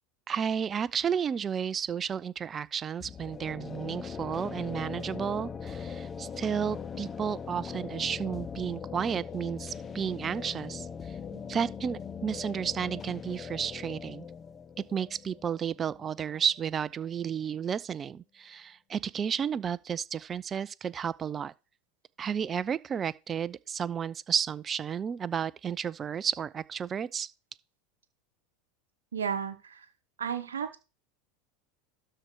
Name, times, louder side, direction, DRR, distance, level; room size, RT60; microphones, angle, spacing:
voice 1, 0.3-14.2 14.9-21.5 22.2-27.3, right 7 dB, 30° right, 0.4 m, -32 dB
sound 1, 3.0-16.7, left 6 dB, 25° left, 0.7 m, -41 dB
voice 2, 29.1-29.8 30.2-30.8, right 7 dB, 85° right, 0.9 m, -33 dB
12.5 x 4.3 x 4.7 m
hypercardioid pair, 85°, 0 cm